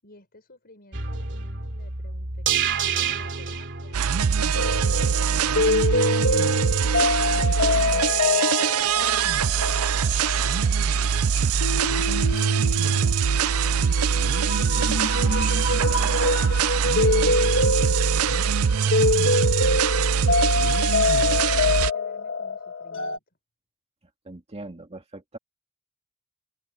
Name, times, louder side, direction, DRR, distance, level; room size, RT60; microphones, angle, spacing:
voice 1, 0.0-4.0 4.6-6.5 7.0-11.5 11.8-14.6 15.1-16.7 17.3-19.0 19.4-21.3 21.6-23.2, left 2 dB, 45° left, 6.3 m, -52 dB
sound 1, 0.9-5.1 5.5-5.6, right 7 dB, 60° right, 2.8 m, -29 dB
sound 2, 3.9-21.9, right 7 dB, 85° right, 0.6 m, -23 dB
sound 3, 4.5-23.2, left 3 dB, 60° left, 1.9 m, -25 dB
voice 2, 24.3-25.4, right 2 dB, 30° right, 1.8 m, -40 dB
head